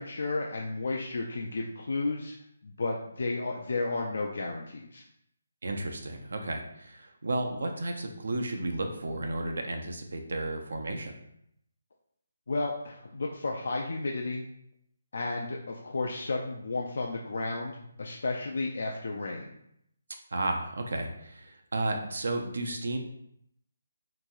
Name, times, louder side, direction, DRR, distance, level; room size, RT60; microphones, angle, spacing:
voice 1, 0.0-2.3 2.6-5.0 12.5-14.4 15.1-19.5, left 3 dB, 65° left, 0 dB, 0.3 m, -33 dB
voice 2, 5.6-11.2 20.3-23.0, right 2 dB, 70° right, 3 dB, 0.4 m, -33 dB
2.9 x 2.5 x 2.3 m, 0.75 s
figure-of-eight pair, 155°, 0 cm